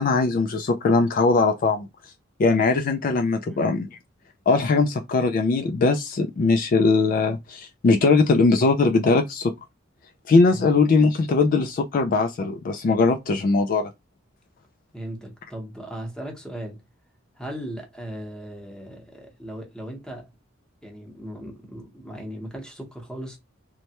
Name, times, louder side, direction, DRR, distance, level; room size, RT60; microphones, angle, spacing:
voice 1, 0.0-1.9 2.4-3.9 4.5-9.5 10.3-13.9, left 3 dB, 45° left, 0.3 m, -20 dB
voice 2, 14.9-16.8 17.4-20.3 20.8-23.4, right 1 dB, 5° left, 0.8 m, -37 dB
3.1 x 2.1 x 2.8 m
head